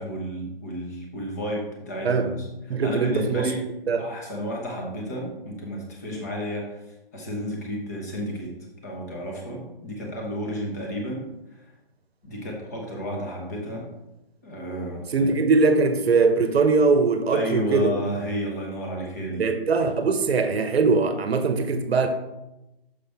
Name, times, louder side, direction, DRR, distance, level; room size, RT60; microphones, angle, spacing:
voice 1, 0.0-3.6 4.0-6.8 7.1-8.5 8.8-11.2 12.2-13.9 14.4-15.3 17.3-19.4, equal, 15° left, -1 dB, 0.8 m, -32 dB
voice 2, 2.7-3.5 3.9-4.0 15.1-18.0 19.4-22.1, right 4 dB, 85° right, 8 dB, 0.9 m, -21 dB
6.5 x 5.7 x 3.4 m, 0.95 s
hypercardioid pair, 170°, 30 cm